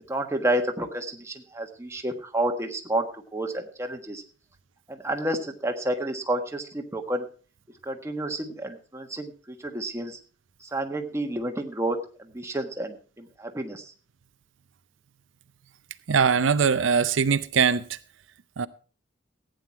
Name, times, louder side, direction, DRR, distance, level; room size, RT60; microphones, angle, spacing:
voice 1, 0.1-3.0 3.3-4.2 4.9-7.2 7.8-10.2 10.6-13.9, right 1 dB, 15° right, 1.4 m, -30 dB
voice 2, 16.1-18.0 18.6-18.7, right 6 dB, 85° right, 0.6 m, -22 dB
15.0 x 9.2 x 4.5 m
head